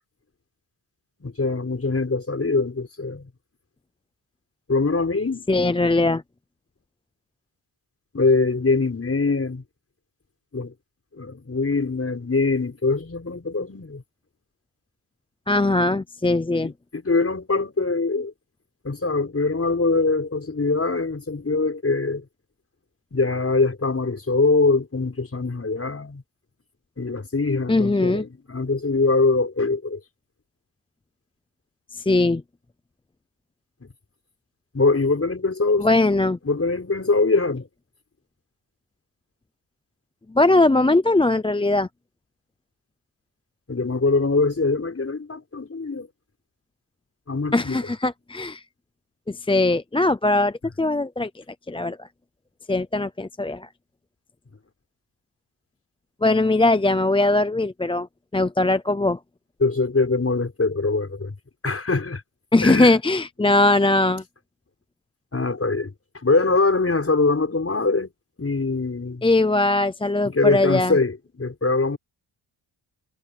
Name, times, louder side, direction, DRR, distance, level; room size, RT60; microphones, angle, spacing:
voice 1, 1.2-3.3 4.7-5.5 8.1-9.6 10.5-10.7 11.1-14.0 16.6-18.3 18.8-22.3 23.1-26.2 27.0-30.0 33.8-33.9 34.7-35.9 36.4-37.7 43.7-46.1 47.3-47.8 59.6-61.3 61.6-62.2 62.6-62.9 65.3-68.1 68.4-69.3 70.2-72.0, left 3 dB, 30° left, 6.2 m, -23 dB
voice 2, 5.5-6.2 15.5-16.7 27.7-28.2 31.9-32.4 35.8-36.4 40.3-41.9 47.5-48.6 49.3-52.1 52.7-53.7 56.2-58.1 58.3-59.2 62.5-64.2 69.2-71.0, left 2 dB, 10° left, 0.5 m, -20 dB
wide cardioid pair, 110°, 49 cm